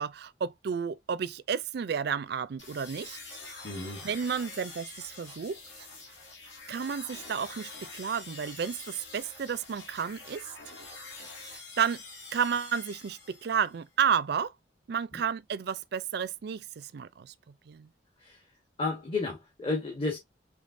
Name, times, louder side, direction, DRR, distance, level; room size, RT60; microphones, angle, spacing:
voice 1, 0.0-3.2 4.0-5.6 6.7-10.4 11.5-12.0 12.3-14.5 14.9-17.3 17.7-17.9, right 7 dB, 60° right, 0.4 m, -31 dB
sound 1, 2.6-13.8, left 3 dB, 75° left, 2.5 m, -46 dB
voice 2, 3.6-4.0 15.1-15.2 18.2-18.4 18.8-20.2, left 3 dB, 30° left, 1.2 m, -32 dB
5.2 x 3.5 x 2.6 m
head